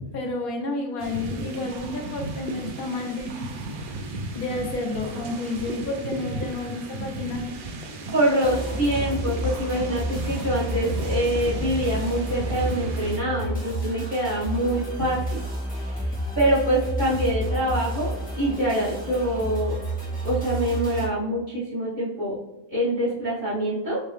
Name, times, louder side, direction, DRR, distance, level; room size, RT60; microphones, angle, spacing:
voice 1, 0.1-3.5 4.3-7.5, left 2 dB, 85° left, 2 dB, 1.3 m, -30 dB
sound 1, 1.0-13.2, right 2 dB, 80° right, 0.4 m, -35 dB
voice 2, 8.1-15.4 15.8-19.8 20.2-22.4 22.7-24.0, right 1 dB, 35° right, -10 dB, 1.3 m, -25 dB
sound 2, 8.4-21.1, equal, 5° left, 1.1 m, -30 dB
3.6 x 2.7 x 3.3 m, 1.0 s
omnidirectional pair, 1.5 m